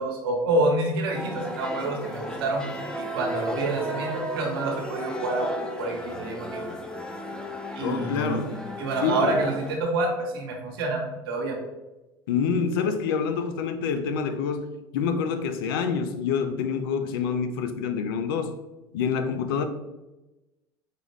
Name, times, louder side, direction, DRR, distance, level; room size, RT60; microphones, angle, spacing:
voice 1, 0.0-2.7 2.9-6.6 7.7-8.5 8.8-11.6, right 2 dB, 75° right, 0 dB, 1.1 m, -27 dB
sound 1, 1.1-9.8, equal, 5° left, 0.6 m, -34 dB
voice 2, 7.8-8.6 9.0-9.5 12.3-18.6 18.9-19.6, left 6 dB, 75° left, 9 dB, 0.5 m, -27 dB
4.9 x 2.4 x 3.1 m, 1.0 s
hypercardioid pair, 75°, 12 cm